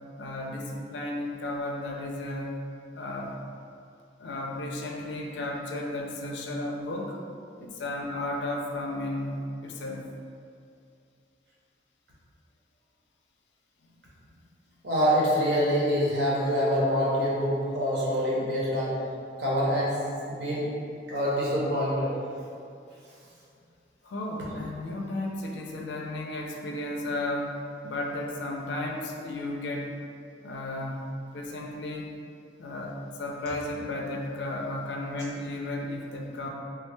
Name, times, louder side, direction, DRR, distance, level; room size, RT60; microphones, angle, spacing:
voice 1, 0.2-2.6 2.9-3.4 4.2-7.2 7.6-10.1 13.8-13.9 24.0-27.5 27.8-29.9 30.4-32.1 32.6-36.5, left 1 dB, 65° left, 0 dB, 0.4 m, -34 dB
voice 2, 14.8-18.9 19.4-20.0 20.3-20.7 21.1-22.1, equal, 65° right, -6 dB, 0.8 m, -25 dB
3.3 x 2.2 x 3.0 m, 2.5 s
head